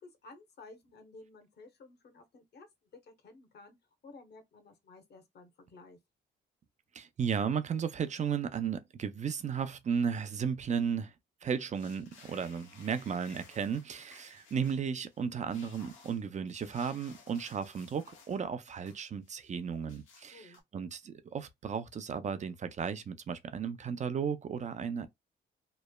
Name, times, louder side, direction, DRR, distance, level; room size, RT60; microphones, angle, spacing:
voice 1, 0.0-2.7 3.0-3.8 4.0-6.0 20.3-20.6, left 3 dB, 55° left, 0.9 m, -54 dB
voice 2, 6.9-11.1 11.4-25.1, right 7 dB, 35° right, 0.5 m, -34 dB
sound 1, 11.7-15.2 15.5-18.4 18.7-19.5 19.9-20.6, left 5 dB, 80° left, 1.1 m, -58 dB
3.1 x 2.0 x 2.2 m
cardioid pair, 90°, 20 cm